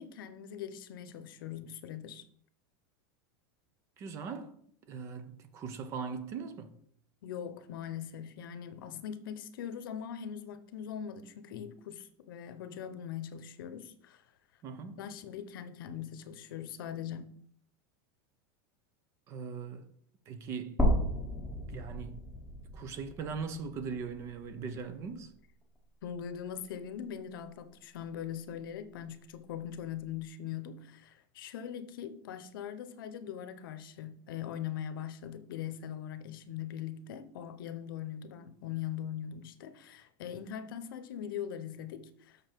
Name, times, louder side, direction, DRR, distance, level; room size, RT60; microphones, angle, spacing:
voice 1, 0.0-2.2 7.2-14.3 14.8-17.3 26.0-42.4, left 9 dB, 75° left, 0.8 m, -41 dB
voice 2, 4.0-4.5 4.9-6.7 14.6-15.0 19.3-19.9 20.3-20.8 21.7-22.2 22.7-25.3, right 5 dB, 25° right, 0.6 m, -40 dB
sound 1, 20.8-24.9 25.3-25.4 26.8-26.9, equal, ahead, 1.1 m, -33 dB
6.9 x 6.3 x 4.5 m
supercardioid pair, 175°, 11 cm